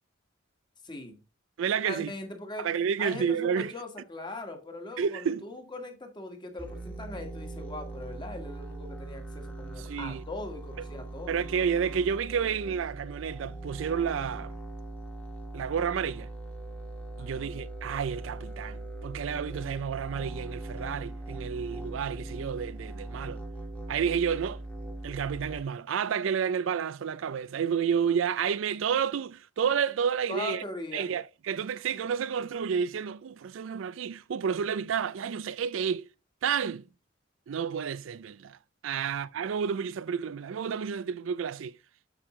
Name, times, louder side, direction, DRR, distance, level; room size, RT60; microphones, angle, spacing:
voice 1, 0.8-1.1 1.8-2.7 3.0-11.4 17.2-17.5 30.3-31.1 39.0-39.2, left 2 dB, 25° left, 1.6 m, -40 dB
voice 2, 1.6-2.1 2.6-3.7 5.0-5.4 9.8-10.2 10.8-10.9 11.3-14.5 15.5-16.3 17.2-23.4 23.9-24.6 25.0-30.6 30.9-36.1 36.4-36.9 37.5-38.6 38.8-41.7, right 7 dB, 80° right, 0.4 m, -30 dB
sound 1, 6.6-25.6, right 2 dB, 10° left, 1.4 m, -40 dB
7.9 x 6.1 x 3.1 m
head